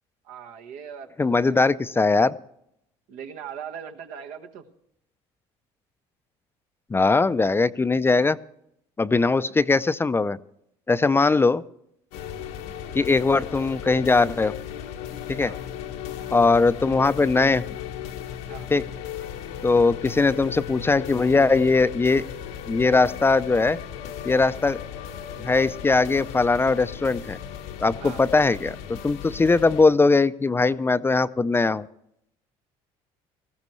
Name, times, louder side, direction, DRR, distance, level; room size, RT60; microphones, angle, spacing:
voice 1, 0.2-1.9 3.1-4.6 15.4-15.6 16.2-16.3 18.5-18.7 28.0-28.2, right 8 dB, 75° right, 5 dB, 1.4 m, -40 dB
voice 2, 1.2-2.3 6.9-8.4 9.0-10.4 10.9-11.6 12.9-14.5 15.3-15.5 16.3-17.6 18.7-18.8 19.6-22.2 22.7-23.8 24.2-24.8 25.4-27.4 27.8-28.8 29.0-31.9, left 3 dB, 15° left, 14 dB, 0.5 m, -20 dB
sound 1, 12.1-29.8, left 9 dB, 85° left, 1.1 m, -36 dB
18.5 x 14.5 x 3.1 m, 0.75 s
supercardioid pair, 85°, 13 cm